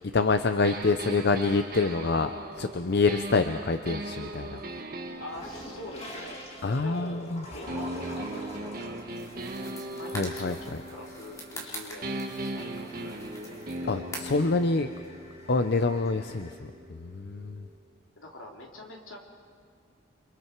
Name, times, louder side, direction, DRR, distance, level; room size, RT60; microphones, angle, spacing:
voice 1, 0.1-4.6 6.6-7.4 10.1-10.5 13.9-14.9 15.5-17.7, left 3 dB, 55° left, 8 dB, 0.6 m, -26 dB
sound 1, 0.6-7.2 7.7-11.7 12.0-17.8, right 1 dB, 45° right, 1.4 m, -39 dB
sound 2, 4.5-16.5, left 1 dB, 30° left, 2.6 m, -47 dB
voice 2, 5.2-6.4 6.7-13.8 18.2-19.2, left 1 dB, 80° left, 0 dB, 3.2 m, -44 dB
sound 3, 9.1-14.5, equal, 15° left, 3.6 m, -44 dB
29.0 x 25.0 x 4.6 m, 2.1 s
head